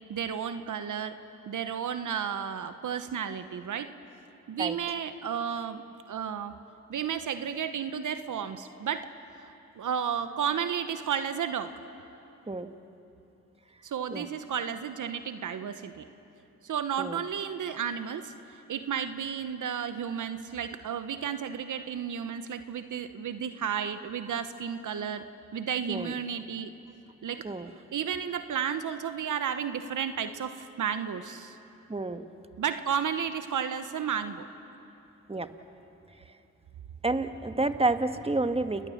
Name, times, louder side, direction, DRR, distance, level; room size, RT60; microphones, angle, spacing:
voice 1, 0.1-1.2 1.5-3.9 4.5-5.8 6.1-6.5 6.9-9.1 9.4-11.7 13.8-16.0 16.6-25.2 25.5-26.7 27.2-27.5 27.9-31.6 32.6-34.5, right 8 dB, 70° right, 10 dB, 1.1 m, -32 dB
voice 2, 31.9-32.2 35.3-35.5 37.0-38.9, right 2 dB, 20° right, 8 dB, 1.5 m, -29 dB
29.5 x 19.0 x 7.3 m, 2.9 s
supercardioid pair, 45°, 32 cm